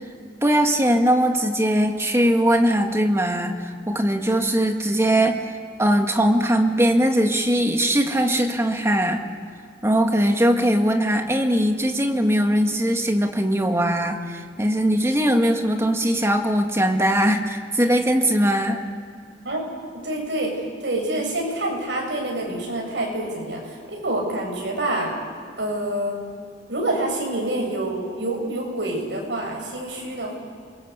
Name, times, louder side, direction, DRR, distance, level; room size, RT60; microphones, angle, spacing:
voice 1, 0.4-5.4 5.8-9.2 9.8-18.8, equal, 15° right, 4 dB, 2.0 m, -20 dB
voice 2, 20.0-20.5 20.8-25.1 25.6-26.2 26.7-30.4, right 1 dB, 80° right, 0 dB, 7.8 m, -27 dB
28.5 x 22.0 x 8.3 m, 2.2 s
head